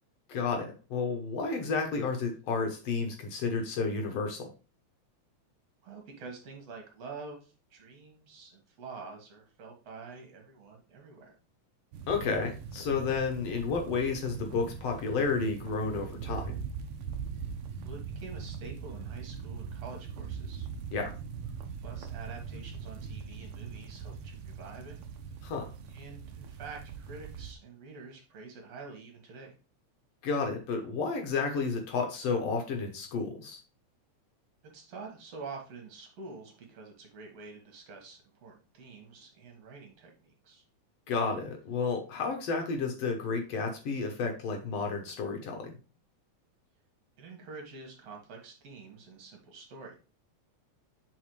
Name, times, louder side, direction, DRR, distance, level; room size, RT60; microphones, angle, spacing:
voice 1, 0.3-4.5 12.1-16.5 20.9-21.1 25.4-25.7 30.2-33.6 41.1-45.7, left 4 dB, 65° left, 3 dB, 2.0 m, -31 dB
voice 2, 5.8-11.3 17.8-20.7 21.8-25.0 25.9-29.5 34.6-40.6 47.2-50.0, right 4 dB, 65° right, 1 dB, 2.7 m, -47 dB
sound 1, 11.9-27.5, right 6 dB, 80° right, 1.2 m, -41 dB
7.7 x 4.6 x 3.2 m, 0.33 s
omnidirectional pair, 3.3 m